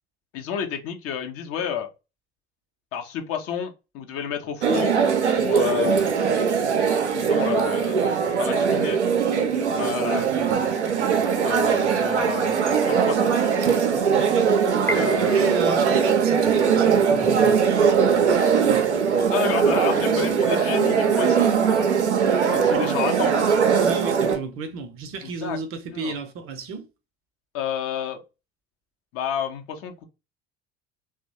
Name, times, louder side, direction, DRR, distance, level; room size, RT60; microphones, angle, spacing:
voice 1, 0.3-1.9 2.9-4.9 5.4-6.1 7.1-8.0 8.3-9.0 9.8-10.3 11.4-13.3 14.8-15.7 19.3-21.6 22.4-23.5 25.2-25.6 25.9-26.1 27.5-28.2 29.1-29.9, left 8 dB, 45° left, 0.7 m, -30 dB
sound 1, 4.6-24.4, right 6 dB, 80° right, 0.5 m, -21 dB
Piano, 14.9-15.9, equal, 5° left, 0.7 m, -32 dB
voice 2, 14.9-17.7 22.6-22.9 23.8-26.9, right 4 dB, 40° right, 0.6 m, -33 dB
2.9 x 2.1 x 2.6 m
figure-of-eight pair, 60°, 33 cm